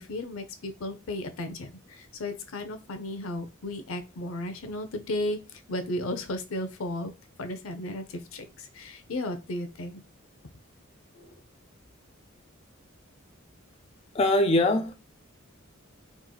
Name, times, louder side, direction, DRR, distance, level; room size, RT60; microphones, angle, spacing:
voice 1, 0.0-7.1 7.4-10.0 11.1-11.3, left 1 dB, 80° left, 0.6 m, -34 dB
voice 2, 14.1-14.9, left 1 dB, 30° left, 0.4 m, -22 dB
3.6 x 3.0 x 2.3 m
head